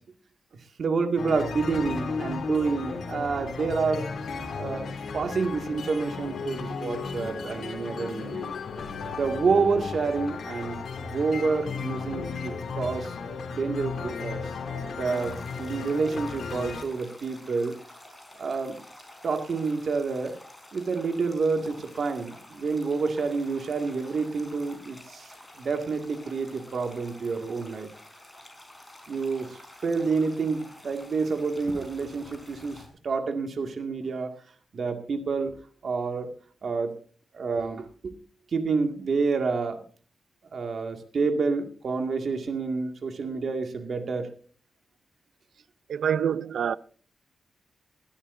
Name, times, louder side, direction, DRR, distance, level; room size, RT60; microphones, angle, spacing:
voice 1, 0.8-4.1 4.6-8.5 9.1-13.1 13.5-14.4 14.9-17.7 18.4-18.8 19.2-20.4 20.7-27.9 29.1-34.3 34.7-35.5 35.8-36.3 36.6-36.9 37.3-38.1 38.5-39.8 40.5-44.3, right 4 dB, 60° right, 2.1 m, -28 dB
sound 1, 1.2-16.8, left 5 dB, 75° left, 3.0 m, -35 dB
sound 2, 15.0-32.9, left 1 dB, 10° left, 4.9 m, -50 dB
voice 2, 45.9-46.8, right 8 dB, 80° right, 0.5 m, -26 dB
21.0 x 12.5 x 2.7 m
cardioid pair, 80°, 0 cm